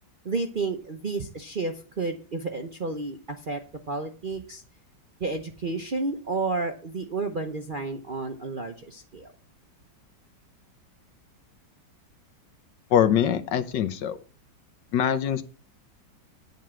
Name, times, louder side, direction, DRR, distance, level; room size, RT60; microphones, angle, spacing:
voice 1, 0.2-4.6 5.2-9.3, right 3 dB, 45° right, 5 dB, 0.7 m, -31 dB
voice 2, 12.9-14.2 14.9-15.4, left 9 dB, 75° left, 10 dB, 1.5 m, -23 dB
9.4 x 5.4 x 7.5 m, 0.38 s
omnidirectional pair, 2.0 m